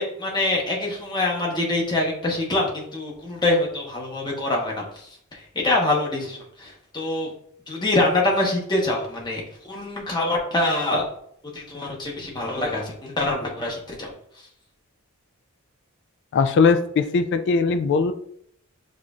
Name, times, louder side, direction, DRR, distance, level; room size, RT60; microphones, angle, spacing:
voice 1, 0.0-4.8 5.3-7.3 7.7-11.0 11.5-14.1, left 2 dB, 20° left, -2 dB, 1.0 m, -25 dB
voice 2, 16.3-18.1, left 5 dB, 55° left, 9 dB, 0.3 m, -19 dB
7.3 x 2.6 x 2.4 m, 0.67 s
head